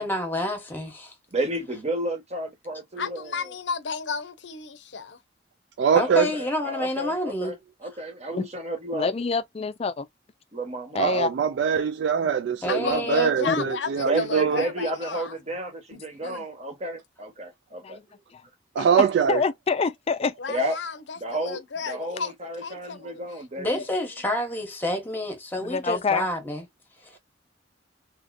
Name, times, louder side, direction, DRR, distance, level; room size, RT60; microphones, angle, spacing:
voice 1, 0.0-1.1 5.9-7.5 12.2-12.3 12.6-13.3 23.6-26.6, left 1 dB, 10° left, 1.0 m, -28 dB
voice 2, 1.3-3.3 5.8-7.5 7.8-9.1 10.5-11.0 14.0-18.0 20.5-20.8 21.2-21.6 21.9-23.8, right 1 dB, 40° right, 1.0 m, -31 dB
voice 3, 3.0-5.2 12.7-15.4 15.9-16.4 20.4-22.3 22.6-23.2 23.5-23.9, left 5 dB, 75° left, 0.6 m, -33 dB
voice 4, 5.8-6.3 10.9-14.6 18.8-19.4, right 7 dB, 65° right, 0.3 m, -23 dB
voice 5, 8.9-10.1 10.9-11.3 13.4-13.6 17.8-18.0 18.8-20.3 25.6-26.3, left 4 dB, 35° left, 0.4 m, -26 dB
2.9 x 2.7 x 2.5 m
head